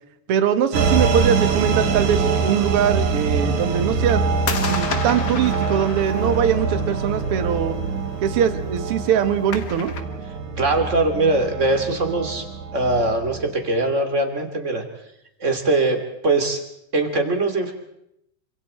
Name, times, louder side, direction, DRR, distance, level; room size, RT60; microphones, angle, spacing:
voice 1, 0.3-4.2 4.6-7.8 8.2-9.9, right 8 dB, 55° right, 10 dB, 2.0 m, -22 dB
sound 1, 0.7-13.7, right 5 dB, 70° right, 3.1 m, -24 dB
sound 2, 0.8-10.0, left 5 dB, 40° left, 1.7 m, -35 dB
voice 2, 10.6-12.4 12.7-14.8 15.4-16.0 16.2-16.6 16.9-17.7, right 2 dB, 25° right, 5 dB, 2.9 m, -21 dB
28.0 x 26.5 x 4.4 m, 0.77 s
omnidirectional pair, 3.6 m